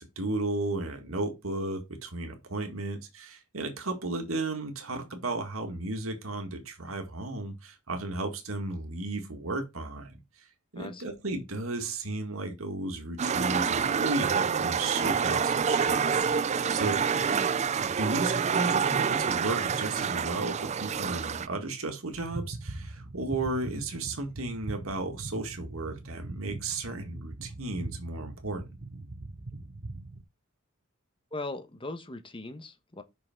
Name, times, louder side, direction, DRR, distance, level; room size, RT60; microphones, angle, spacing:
voice 1, 0.0-10.2 10.7-17.0 17.8-28.7, right 2 dB, 90° right, 2.0 m, -34 dB
sound 1, 13.2-21.5, right 6 dB, 35° right, 0.4 m, -27 dB
sound 2, 22.1-30.2, right 2 dB, 55° right, 1.1 m, -41 dB
voice 2, 31.3-33.0, left 2 dB, 25° left, 1.2 m, -39 dB
6.0 x 5.9 x 4.5 m
head